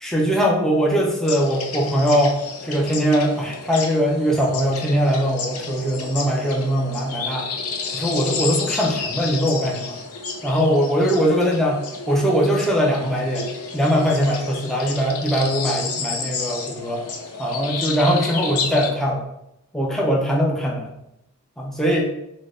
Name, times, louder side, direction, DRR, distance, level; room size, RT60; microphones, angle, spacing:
voice 1, 0.0-2.4 2.6-7.4 7.9-10.0 10.4-11.8 12.1-13.5 13.7-17.0 17.4-19.2 19.7-20.9 21.6-22.1, equal, ahead, -2 dB, 0.4 m, -21 dB
sound 1, 1.2-18.9, left 4 dB, 80° left, 0.6 m, -31 dB
3.3 x 2.1 x 3.8 m, 0.85 s
head